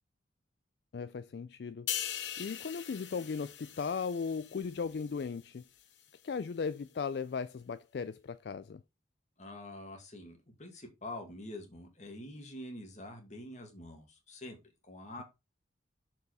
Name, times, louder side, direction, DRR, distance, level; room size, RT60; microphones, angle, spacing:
voice 1, 0.9-1.9 2.4-5.6 6.2-8.8, left 5 dB, 60° left, 0.4 m, -37 dB
sound 1, 1.9-5.4 5.8-6.0, left 10 dB, 80° left, 1.0 m, -41 dB
voice 2, 9.4-14.6 14.8-15.2, left 1 dB, 40° left, 2.1 m, -46 dB
6.9 x 4.6 x 4.8 m
head